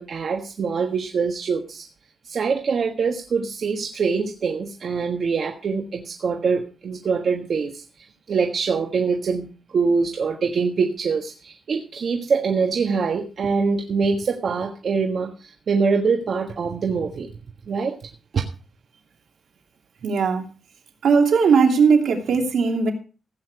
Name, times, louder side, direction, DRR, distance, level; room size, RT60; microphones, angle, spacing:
voice 1, 0.0-1.9 2.2-17.3 17.7-18.4, right 5 dB, 60° right, 3 dB, 1.5 m, -24 dB
voice 2, 20.0-20.5 21.0-22.9, right 5 dB, 80° right, 3 dB, 2.8 m, -18 dB
15.5 x 8.8 x 4.7 m, 0.35 s
wide cardioid pair, 115°, 0 cm